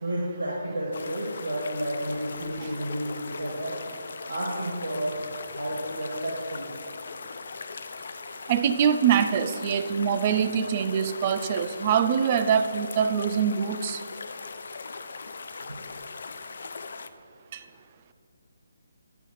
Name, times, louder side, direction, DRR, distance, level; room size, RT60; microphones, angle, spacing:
voice 1, 0.0-3.8 4.3-5.2 5.5-6.7 15.5-15.8, right 1 dB, 90° right, -3 dB, 1.1 m, -31 dB
sound 1, 0.9-17.1, left 4 dB, 60° left, 0.3 m, -40 dB
voice 2, 8.5-14.0 17.5-17.6, right 8 dB, 35° right, 10 dB, 0.3 m, -24 dB
8.2 x 5.5 x 3.0 m, 2.3 s
figure-of-eight pair, 150°, 0 cm